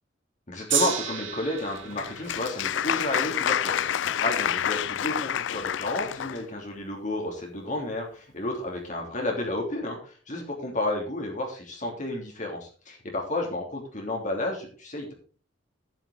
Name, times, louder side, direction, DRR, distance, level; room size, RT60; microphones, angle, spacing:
voice 1, 0.5-15.1, left 2 dB, 40° left, 0 dB, 3.2 m, -31 dB
Gong, 0.7-7.1 7.8-7.9, right 9 dB, 80° right, 2.6 m, -35 dB
Applause, 1.6-6.4, left 9 dB, 75° left, 0.4 m, -28 dB
11.0 x 10.0 x 3.8 m, 0.38 s
head